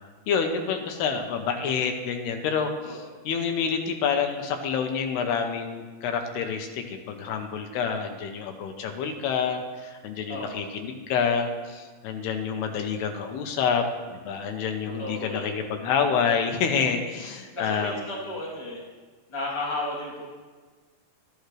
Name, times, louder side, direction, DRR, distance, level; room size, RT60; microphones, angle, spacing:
voice 1, 0.3-13.8 14.1-18.1, left 6 dB, 80° left, 5 dB, 2.9 m, -28 dB
voice 2, 15.0-15.5 17.6-18.8 19.3-20.2, left 1 dB, 10° left, -6 dB, 1.9 m, -33 dB
13.5 x 13.0 x 3.3 m, 1.4 s
omnidirectional pair, 4.7 m